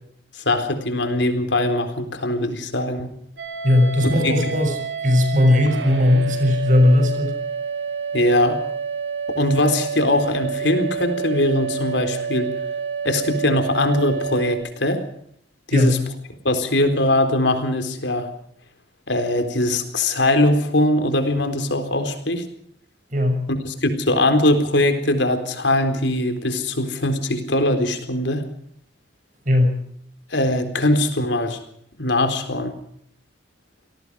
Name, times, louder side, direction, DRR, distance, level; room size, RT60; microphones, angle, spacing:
voice 1, 0.5-3.1 4.2-4.3 8.1-8.6 9.4-12.5 13.0-15.0 15.7-16.0 16.4-18.3 19.1-22.4 23.5-28.5 30.3-31.6 32.0-32.7, left 1 dB, 80° left, 7 dB, 4.0 m, -21 dB
sound 1, 3.4-14.5, right 6 dB, 75° right, 5.6 m, -29 dB
voice 2, 3.6-7.4 15.7-15.9 23.1-23.4 29.4-29.8, left 1 dB, 45° right, 6 dB, 6.4 m, -18 dB
28.5 x 18.5 x 4.9 m, 0.67 s
head